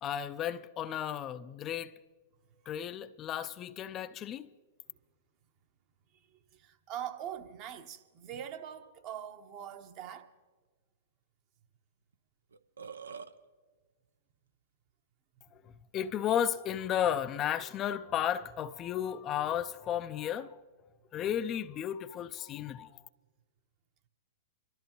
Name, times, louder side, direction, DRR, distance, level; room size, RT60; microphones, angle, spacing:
voice 1, 0.0-1.9 2.7-4.5 15.9-20.6 21.1-22.9, left 10 dB, 30° left, 0.4 m, -33 dB
voice 2, 6.3-10.3, right 10 dB, 40° right, 1.0 m, -43 dB
Burping eructation, 12.1-12.2 12.5-13.3, right 6 dB, 80° right, 0.7 m, -44 dB
25.0 x 13.5 x 3.0 m
hypercardioid pair, 110°, 0 cm